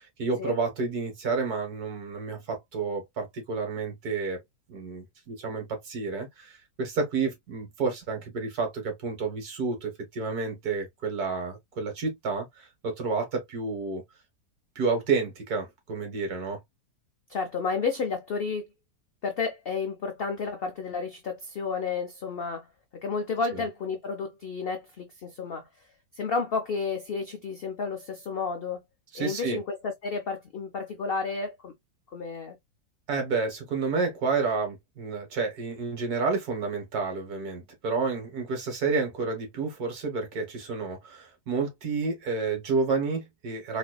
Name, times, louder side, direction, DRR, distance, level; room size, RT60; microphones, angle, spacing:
voice 1, 0.0-4.4 4.7-14.0 14.7-16.6 23.5-23.6 29.1-29.6 33.1-43.8, right 4 dB, 65° right, 1.8 m, -30 dB
voice 2, 17.3-18.7 19.2-22.7 23.0-25.7 26.1-28.8 29.1-31.7 32.1-32.6, left 4 dB, 80° left, 0.5 m, -31 dB
4.2 x 2.5 x 2.2 m
omnidirectional pair, 1.7 m